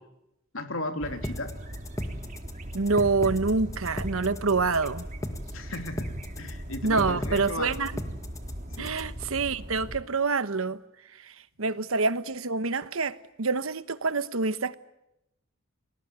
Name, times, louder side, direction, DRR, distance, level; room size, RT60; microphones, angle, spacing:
voice 1, 0.5-1.5 5.5-7.8 8.7-8.9 11.6-11.7, left 2 dB, 70° left, 3.2 m, -35 dB
sound 1, 1.0-10.0, equal, 40° right, 2.4 m, -39 dB
sound 2, 1.2-9.2, left 1 dB, 15° left, 1.8 m, -36 dB
voice 2, 2.7-5.1 6.8-7.9 8.8-10.8 11.2-11.3 11.6-14.8, right 4 dB, 80° right, 1.1 m, -26 dB
30.0 x 20.5 x 9.5 m
head